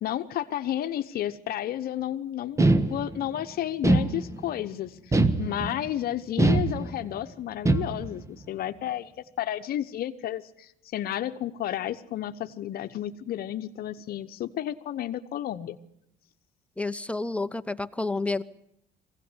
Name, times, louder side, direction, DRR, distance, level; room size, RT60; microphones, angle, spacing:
voice 1, 0.0-15.8, left 12 dB, 65° left, 9 dB, 1.0 m, -32 dB
sound 1, 2.6-3.4 3.8-4.6 5.1-5.9 6.4-7.2 7.7-8.3, right 2 dB, 15° right, 1.2 m, -23 dB
voice 2, 16.8-18.4, left 3 dB, 5° left, 11 dB, 0.8 m, -29 dB
22.0 x 16.5 x 9.7 m, 0.75 s
cardioid pair, 110°, 17 cm